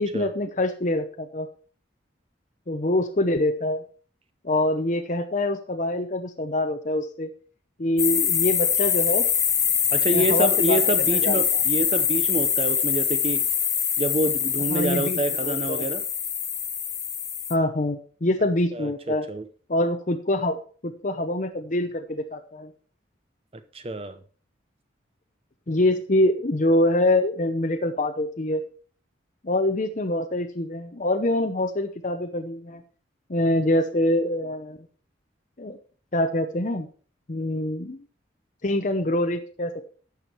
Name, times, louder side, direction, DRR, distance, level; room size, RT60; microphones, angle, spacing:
voice 1, 0.0-1.5 2.7-3.8 4.4-7.3 7.8-9.3 10.1-10.8 11.1-11.6 14.7-15.9 17.5-19.3 19.7-22.7 25.7-28.6 29.4-32.8 33.3-34.8 35.6-35.8 36.1-36.9 37.3-38.0 38.6-39.9, left 1 dB, 40° left, 6 dB, 0.7 m, -25 dB
sound 1, 8.0-17.5, left 8 dB, 15° left, 0.4 m, -24 dB
voice 2, 9.9-13.4 14.0-16.0 18.7-19.4 23.7-24.2, right 1 dB, 30° right, 11 dB, 0.7 m, -27 dB
11.5 x 7.1 x 4.5 m, 0.41 s
head